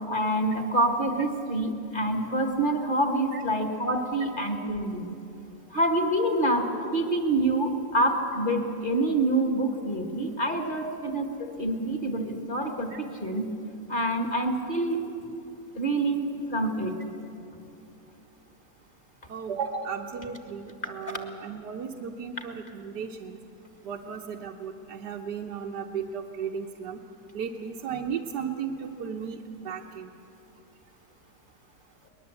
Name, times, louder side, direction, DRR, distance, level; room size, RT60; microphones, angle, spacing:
voice 1, 0.1-5.1 5.7-13.5 13.9-15.0 15.8-16.9 20.8-20.9, right 1 dB, 30° left, 4 dB, 2.0 m, -26 dB
voice 2, 19.3-23.4 23.8-27.0 27.3-29.4 29.6-30.1, right 6 dB, 70° right, 0 dB, 1.5 m, -35 dB
22.0 x 20.5 x 8.3 m, 2.8 s
omnidirectional pair, 1.9 m